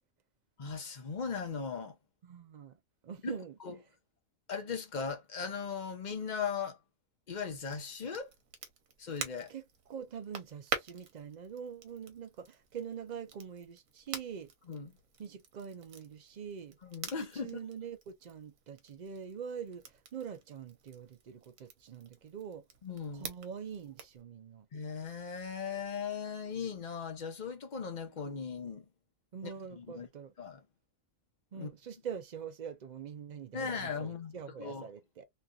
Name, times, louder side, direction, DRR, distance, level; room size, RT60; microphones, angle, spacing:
voice 1, 0.6-2.0 3.2-3.8 4.5-6.8 7.3-8.3 9.0-9.5 14.7-14.9 16.8-17.6 22.8-23.3 24.7-28.8 29.4-30.1 30.4-30.6 31.5-31.7 33.5-34.9, left 6 dB, 40° left, 0.8 m, -38 dB
voice 2, 2.2-2.7 3.0-3.6 9.5-14.5 15.2-16.8 17.3-22.6 23.1-24.7 29.3-30.3 31.5-35.2, right 7 dB, 65° right, 0.4 m, -44 dB
Crackle, 7.6-24.2, right 6 dB, 85° right, 1.2 m, -47 dB
3.1 x 2.6 x 2.2 m
omnidirectional pair, 1.4 m